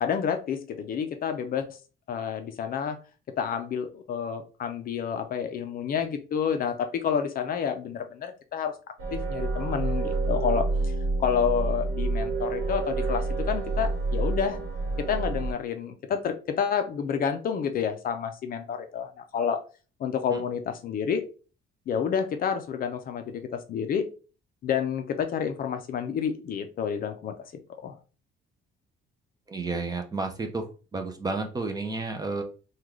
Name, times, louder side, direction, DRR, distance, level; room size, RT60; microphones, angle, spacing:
voice 1, 0.0-1.6 2.1-3.0 3.4-8.7 9.1-10.9 11.2-14.6 15.0-19.6 20.0-21.2 21.9-24.0 24.6-27.4 27.8-28.0, left 7 dB, 45° left, 7 dB, 0.4 m, -29 dB
sound 1, 9.0-15.5, right 3 dB, 75° right, 1.1 m, -28 dB
voice 2, 29.5-30.6 30.9-32.4, right 3 dB, 20° right, 4 dB, 0.4 m, -31 dB
3.7 x 2.3 x 3.0 m, 0.35 s
cardioid pair, 155°, 21 cm